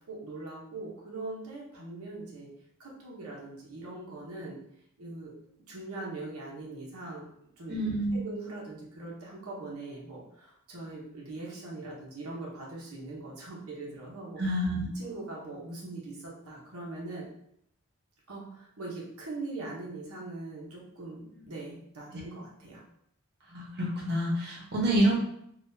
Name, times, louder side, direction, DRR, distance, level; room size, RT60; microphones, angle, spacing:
voice 1, 0.1-2.5 2.8-4.6 5.0-5.3 5.7-7.3 7.6-7.9 8.1-14.4 14.9-17.3 18.3-22.8, right 2 dB, 80° right, -4 dB, 0.9 m, -41 dB
voice 2, 7.7-8.2 14.4-14.9 23.5-25.2, right 1 dB, 50° right, -4 dB, 1.0 m, -27 dB
3.9 x 2.4 x 2.6 m, 0.73 s
head